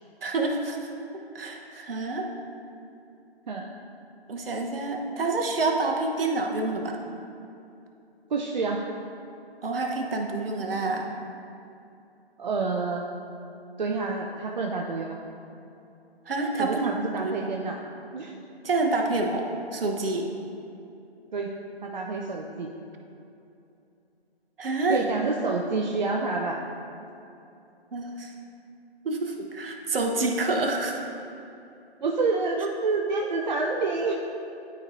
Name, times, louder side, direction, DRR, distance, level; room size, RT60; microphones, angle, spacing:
voice 1, 0.2-0.8 1.3-2.3 4.3-7.0 9.6-11.1 16.3-17.3 18.6-20.3 24.6-25.0 27.9-28.3 29.0-31.0, right 3 dB, 60° right, 2 dB, 1.1 m, -27 dB
voice 2, 8.3-8.8 12.4-13.0 13.8-15.2 16.6-17.8 18.1-18.3 21.3-21.5 21.8-22.7 24.9-26.6 32.0-34.1, right 3 dB, 45° right, 0 dB, 0.6 m, -28 dB
12.0 x 4.4 x 2.6 m, 2.8 s
figure-of-eight pair, 145°, 32 cm